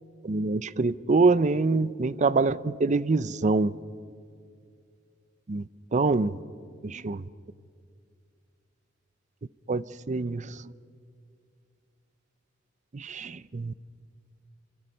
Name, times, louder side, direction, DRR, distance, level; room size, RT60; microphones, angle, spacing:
voice 1, 0.2-3.8 5.5-6.4 6.8-7.2 9.7-10.7 12.9-13.7, right 3 dB, 40° right, 0.5 m, -25 dB
29.0 x 25.0 x 5.4 m
head